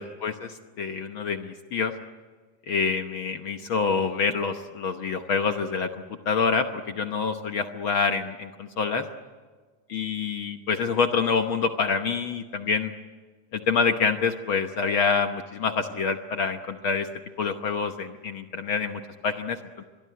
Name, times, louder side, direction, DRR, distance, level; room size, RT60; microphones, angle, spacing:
voice 1, 0.0-1.9 2.7-5.9 6.3-9.0 9.9-12.9 13.5-17.1 17.4-19.8, left 5 dB, 65° left, 6 dB, 1.3 m, -26 dB
25.5 x 22.5 x 9.4 m, 1.4 s
omnidirectional pair, 3.6 m